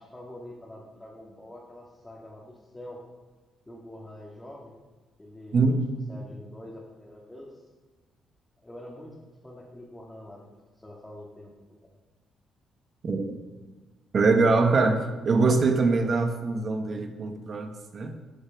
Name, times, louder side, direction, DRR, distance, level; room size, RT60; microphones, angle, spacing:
voice 1, 0.0-3.0 3.7-4.8 5.2-5.8 6.1-7.7 8.6-9.2 9.4-10.5 10.7-11.5 11.8-11.9 15.2-15.3, left 1 dB, 15° left, -4 dB, 2.4 m, -45 dB
voice 2, 13.0-13.4 14.1-18.1, right 3 dB, 45° right, 6 dB, 1.3 m, -23 dB
12.5 x 6.6 x 6.0 m, 1.3 s
cardioid pair, 90°, 0 cm